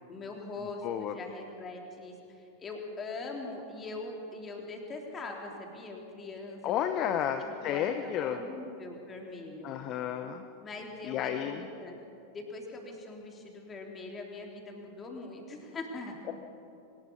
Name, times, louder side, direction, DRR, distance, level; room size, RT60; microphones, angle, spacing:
voice 1, 0.1-9.7 10.6-12.0 12.3-16.2, left 3 dB, 20° left, 1 dB, 3.7 m, -42 dB
voice 2, 0.8-1.1 6.6-8.4 9.6-10.4 11.0-11.6, left 10 dB, 35° left, 8 dB, 1.0 m, -32 dB
24.5 x 20.0 x 5.5 m, 2.7 s
figure-of-eight pair, 90°, 0 cm